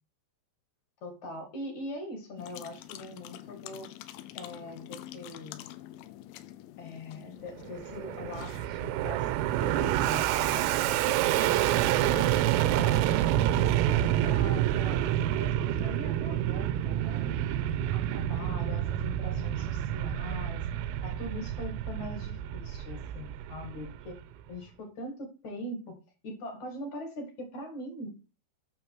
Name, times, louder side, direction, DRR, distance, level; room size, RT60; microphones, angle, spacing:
voice 1, 1.0-3.9 4.3-5.7 6.8-9.3 9.6-13.1 13.6-17.3 17.9-20.7 21.0-24.2 24.5-26.0 26.2-28.1, left 1 dB, 50° left, 4 dB, 2.3 m, -42 dB
sound 1, 2.4-8.7, left 14 dB, 85° left, 3.3 m, -46 dB
Fixed-wing aircraft airplane, 7.6-24.2, right 12 dB, 85° right, 3.3 m, -28 dB
9.1 x 6.6 x 4.7 m, 0.32 s
omnidirectional pair, 5.9 m